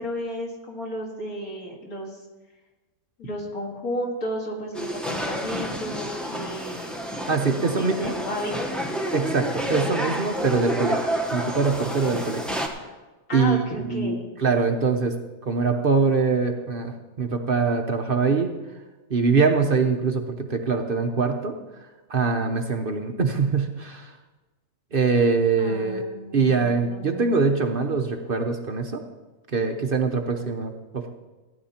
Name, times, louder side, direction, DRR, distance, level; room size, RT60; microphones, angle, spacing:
voice 1, 0.0-2.2 3.2-6.9 7.5-8.9 9.7-10.1 13.3-14.2 25.6-27.4, equal, 85° left, -1 dB, 2.6 m, -33 dB
sound 1, 4.7-12.7, equal, ahead, 0.9 m, -30 dB
voice 2, 7.3-8.1 9.1-11.0 11.3-12.4 13.3-15.2 15.5-18.5 19.1-21.6 22.1-24.1 24.9-26.0 26.3-29.0 29.5-31.1, right 4 dB, 45° right, 5 dB, 0.9 m, -23 dB
15.5 x 10.0 x 4.3 m, 1.2 s
omnidirectional pair, 1.5 m